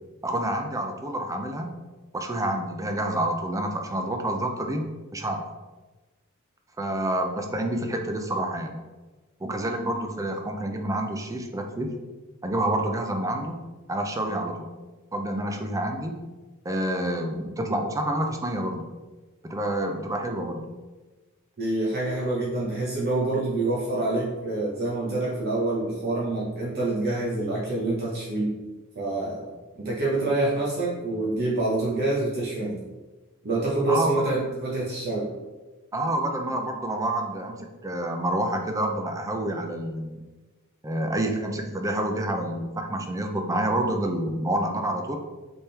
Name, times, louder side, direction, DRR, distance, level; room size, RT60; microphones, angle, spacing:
voice 1, 0.2-1.8 2.1-4.8 5.1-5.4 6.8-8.8 9.4-12.0 12.4-13.6 13.9-14.7 15.1-16.2 16.6-18.9 19.4-20.7 33.9-34.6 35.9-40.2 40.8-45.2, right 1 dB, 15° right, 4 dB, 0.4 m, -28 dB
voice 2, 21.6-28.6 29.0-29.5 29.8-32.8 33.4-35.3, right 2 dB, 50° right, -5 dB, 0.8 m, -26 dB
4.3 x 3.6 x 3.3 m, 1.2 s
head